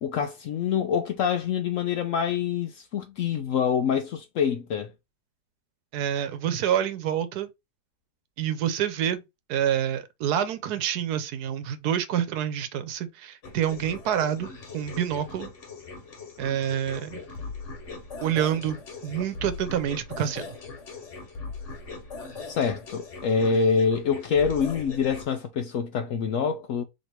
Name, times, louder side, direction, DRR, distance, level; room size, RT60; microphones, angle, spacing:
voice 1, 0.0-4.9 22.5-26.8, left 6 dB, 70° left, 0.8 m, -26 dB
voice 2, 5.9-7.5 8.4-9.2 9.5-15.5 16.4-17.2 18.2-20.5, right 10 dB, 75° right, 1.2 m, -27 dB
sound 1, 13.4-25.2, left 4 dB, 50° left, 1.3 m, -40 dB
3.2 x 2.9 x 4.3 m
omnidirectional pair, 1.8 m